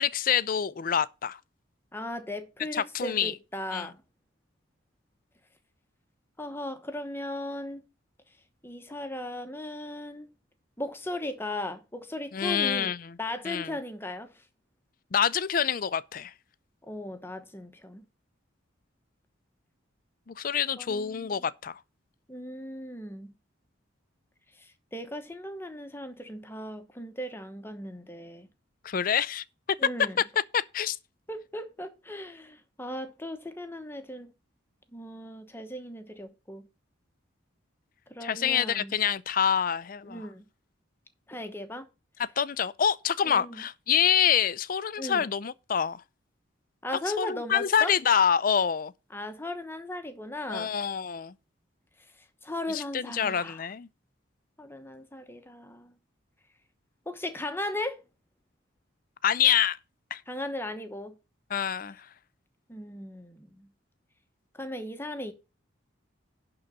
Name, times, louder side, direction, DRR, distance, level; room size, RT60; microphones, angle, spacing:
voice 1, 0.0-1.4 2.7-3.3 3.7-3.9 12.3-13.2 13.4-13.7 15.1-16.3 20.3-21.8 28.8-29.4 30.5-31.0 38.2-40.3 42.2-46.0 47.2-48.9 50.5-51.3 52.7-53.9 59.2-59.8 60.1-60.2 61.5-62.1, left 8 dB, 45° left, 0.4 m, -26 dB
voice 2, 1.9-4.0 6.4-7.8 8.6-10.3 10.8-12.9 13.2-14.4 16.9-18.0 20.8-21.4 22.3-23.3 24.6-28.5 29.8-30.2 31.3-34.3 34.9-36.7 38.1-38.9 40.1-40.4 41.3-41.9 43.3-43.6 45.0-45.2 46.8-47.9 49.1-50.7 52.4-53.6 54.6-55.9 57.1-58.0 60.3-61.1 62.7-63.7 64.5-65.3, left 1 dB, 10° left, 0.9 m, -37 dB
11.0 x 3.9 x 6.7 m
head